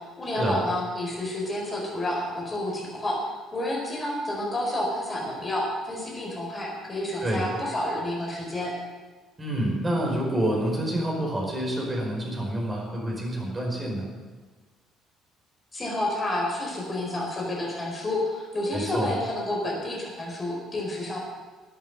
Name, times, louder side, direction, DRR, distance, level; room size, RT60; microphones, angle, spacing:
voice 1, 0.0-3.2 3.5-8.7 15.7-21.2, left 1 dB, 25° left, -2 dB, 4.6 m, -30 dB
voice 2, 9.4-14.1 18.7-19.1, right 1 dB, 25° right, -1 dB, 5.0 m, -28 dB
13.5 x 9.0 x 8.0 m, 1.3 s
figure-of-eight pair, 50°, 0 cm